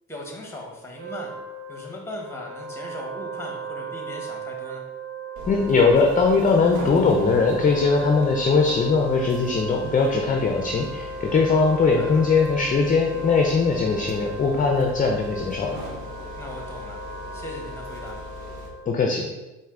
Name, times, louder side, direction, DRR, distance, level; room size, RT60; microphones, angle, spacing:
voice 1, 0.1-1.4 1.7-4.8 11.8-12.2 16.4-17.0 17.3-18.2, left 1 dB, 10° left, 0 dB, 1.0 m, -38 dB
Wind instrument woodwind instrument, 0.9-19.0, right 3 dB, 30° right, 0.9 m, -36 dB
sound 1, 5.4-18.7, equal, 75° right, 0.8 m, -40 dB
voice 2, 5.5-15.8 18.9-19.3, left 4 dB, 30° left, 2 dB, 0.5 m, -20 dB
4.4 x 2.6 x 3.7 m, 1.1 s
cardioid pair, 90°, 30 cm